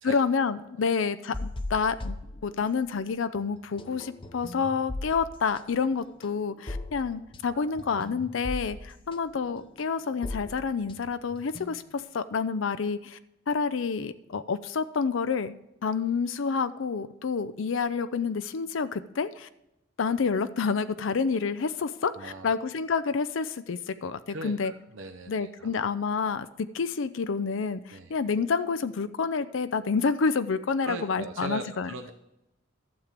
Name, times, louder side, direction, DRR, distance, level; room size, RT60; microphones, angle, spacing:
voice 1, 0.0-2.2 2.4-13.2 13.5-19.5 20.0-24.7 25.3-31.9, left 5 dB, 70° left, 12 dB, 0.5 m, -28 dB
sound 1, 1.3-3.0 3.3-12.0, left 2 dB, 25° left, 0.8 m, -39 dB
voice 2, 7.5-8.0 22.2-22.5 24.3-25.8 27.9-28.1 30.8-32.1, right 3 dB, 70° right, 5 dB, 0.7 m, -40 dB
12.0 x 7.5 x 5.0 m, 0.89 s
head